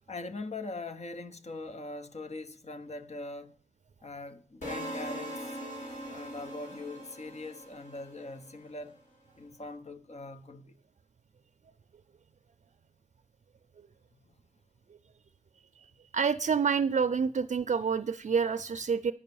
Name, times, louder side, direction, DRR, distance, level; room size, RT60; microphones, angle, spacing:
voice 1, 0.1-3.6 4.0-5.5 6.1-9.0 9.4-10.7, left 2 dB, 60° left, 0.8 m, -41 dB
sound 1, 4.6-8.7, equal, 85° left, 3.3 m, -41 dB
voice 2, 16.1-19.1, right 6 dB, 70° right, 0.4 m, -28 dB
9.7 x 5.4 x 6.9 m
wide cardioid pair, 75°, 13 cm